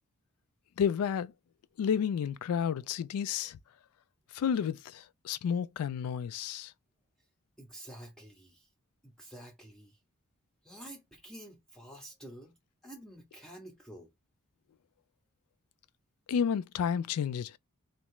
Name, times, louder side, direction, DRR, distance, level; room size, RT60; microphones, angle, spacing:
voice 1, 0.8-1.3 1.8-3.6 4.3-6.7 16.3-17.6, left 7 dB, 80° left, 0.3 m, -31 dB
voice 2, 7.6-8.7 9.0-10.0 10.6-12.6 12.8-14.1, right 1 dB, 5° left, 0.4 m, -49 dB
3.2 x 2.3 x 2.9 m
head